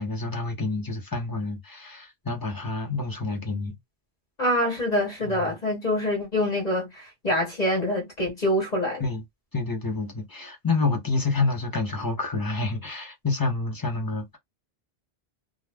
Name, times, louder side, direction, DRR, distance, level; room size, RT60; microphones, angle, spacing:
voice 1, 0.0-3.8 5.2-5.4 9.0-9.2 9.5-14.4, left 3 dB, 20° left, 0.8 m, -28 dB
voice 2, 4.4-9.0, left 1 dB, 45° left, 1.2 m, -25 dB
2.4 x 2.3 x 3.3 m
omnidirectional pair, 1.0 m